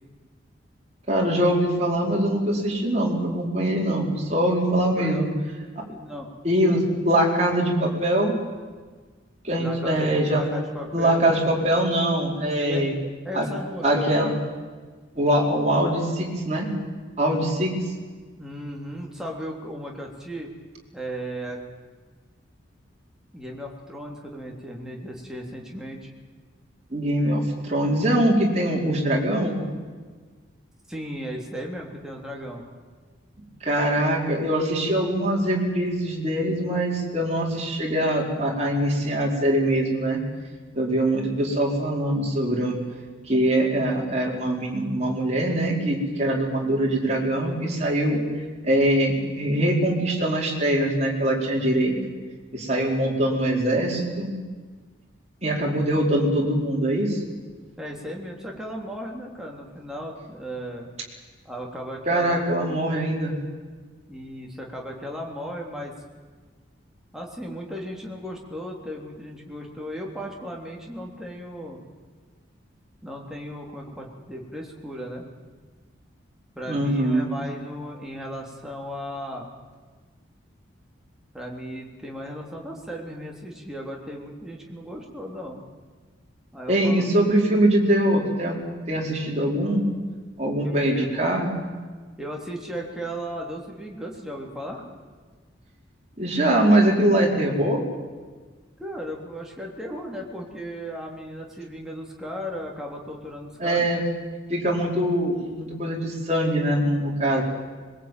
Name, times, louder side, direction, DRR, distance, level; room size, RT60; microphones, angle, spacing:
voice 1, 1.1-5.3 5.7-5.8 6.4-8.3 9.4-10.4 10.9-12.9 13.3-13.5 13.8-14.3 15.2-16.7 17.2-17.8 26.9-29.6 33.6-40.2 40.7-42.8 43.3-48.2 48.6-52.0 52.5-54.3 55.4-57.2 62.1-63.3 76.7-77.3 86.7-88.6 88.9-89.9 90.4-91.5 96.2-97.8 103.6-104.0 104.5-107.4, right 1 dB, 35° right, -2 dB, 4.8 m, -23 dB
voice 2, 5.8-6.3 6.6-6.8 9.6-11.6 12.6-14.2 18.4-20.5 20.9-21.6 23.3-26.1 30.9-32.6 57.8-60.9 61.4-62.4 64.1-65.9 67.1-71.8 73.0-75.3 76.5-79.5 81.3-85.6 86.5-87.0 90.6-91.4 92.2-94.8 98.8-103.9, equal, 5° right, -1 dB, 3.4 m, -36 dB
22.0 x 21.5 x 9.2 m, 1.4 s
head